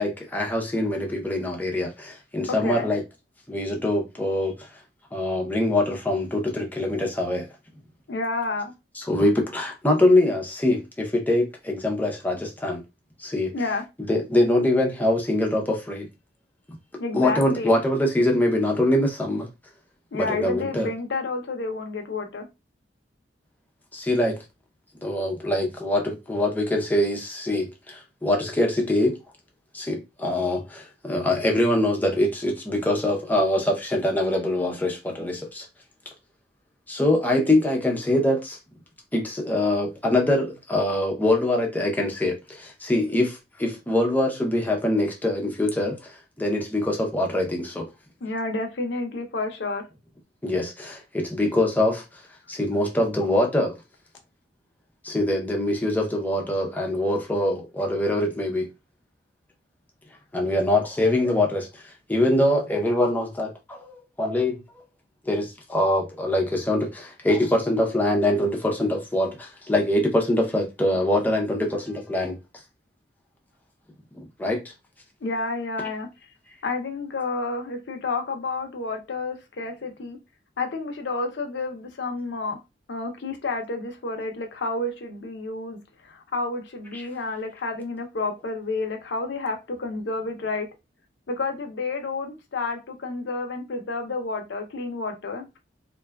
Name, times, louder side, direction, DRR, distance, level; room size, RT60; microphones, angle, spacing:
voice 1, 0.0-3.0 3.5-4.6 5.1-7.5 9.0-12.8 13.2-13.5 14.1-16.1 17.1-19.5 20.1-20.9 23.9-24.4 25.0-29.2 29.7-35.7 36.9-38.6 39.1-47.9 50.4-52.0 52.5-53.8 55.0-58.7 60.3-61.8 62.1-64.8 65.3-72.4 74.2-74.6 86.9-87.0, left 1 dB, 10° left, 0.5 m, -24 dB
voice 2, 8.1-8.7 13.5-13.8 17.0-17.8 20.1-22.4 48.2-49.8 75.2-76.1 76.6-80.2 80.6-82.6 82.9-90.7 91.3-95.6, left 3 dB, 70° left, 0.6 m, -30 dB
2.6 x 2.3 x 2.2 m
head